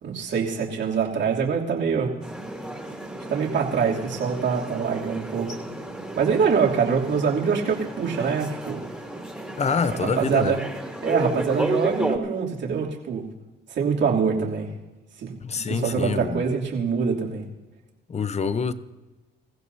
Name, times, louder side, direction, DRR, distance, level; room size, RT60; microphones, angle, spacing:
voice 1, 0.0-2.1 3.3-5.6 6.2-8.8 10.0-10.6 11.0-13.2 13.7-14.7 15.2-15.3 15.7-17.4, right 6 dB, 65° right, 3.0 m, -24 dB
sound 1, 2.2-12.2, right 1 dB, 5° right, 3.2 m, -33 dB
voice 2, 9.6-10.6 15.4-16.4 18.1-18.7, left 5 dB, 35° left, 0.8 m, -26 dB
26.5 x 15.5 x 2.8 m
cardioid pair, 90°, 20 cm